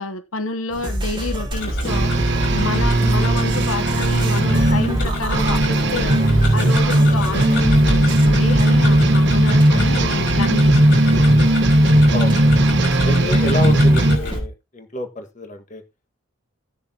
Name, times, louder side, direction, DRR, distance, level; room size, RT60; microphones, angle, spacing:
voice 1, 0.0-2.1 2.5-6.2 6.5-11.5, left 3 dB, 80° left, 0.9 m, -29 dB
sound 1, 0.7-14.5, right 1 dB, 20° right, 2.2 m, -27 dB
Tick-tock, 1.5-14.4, left 2 dB, 55° left, 5.1 m, -30 dB
sound 2, 1.9-14.2, right 1 dB, 55° right, 1.1 m, -17 dB
voice 2, 12.1-12.6 13.0-15.8, left 2 dB, 35° left, 1.6 m, -29 dB
18.0 x 6.8 x 2.8 m
head